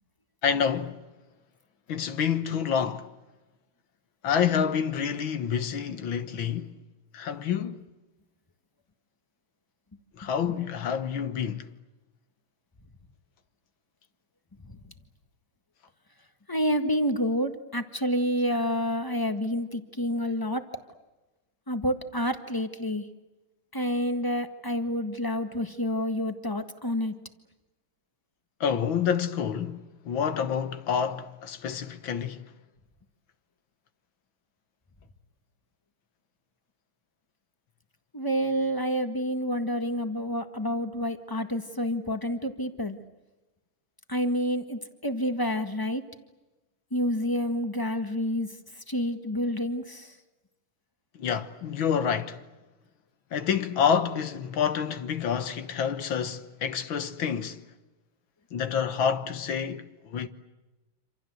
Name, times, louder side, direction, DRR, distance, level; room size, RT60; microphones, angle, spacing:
voice 1, 0.4-1.0 1.9-3.1 4.2-6.7 7.1-7.8 10.2-11.7 28.6-29.8 30.1-32.4 51.2-52.4 53.3-57.6 58.5-60.3, left 7 dB, 65° left, 2.1 m, -28 dB
voice 2, 10.2-10.5 16.5-20.6 21.7-23.0 23.7-27.1 38.1-43.0 44.1-46.0 46.9-48.5 48.9-50.1, equal, 10° left, 1.5 m, -28 dB
27.5 x 27.0 x 7.9 m
omnidirectional pair, 2.4 m